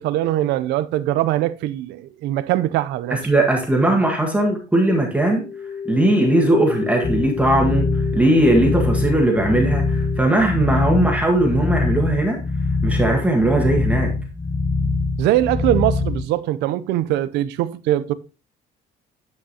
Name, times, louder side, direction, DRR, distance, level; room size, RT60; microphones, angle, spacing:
voice 1, 0.0-3.2 15.2-18.1, right 14 dB, 85° right, 0.5 m, -22 dB
voice 2, 3.1-5.4 5.8-12.4 12.8-14.1, right 1 dB, 10° right, 1.6 m, -19 dB
sound 1, 5.3-10.2, left 5 dB, 70° left, 0.6 m, -31 dB
sound 2, 7.0-16.3, left 3 dB, 20° left, 0.7 m, -23 dB
9.3 x 5.4 x 2.8 m
cardioid pair, 110°, 17 cm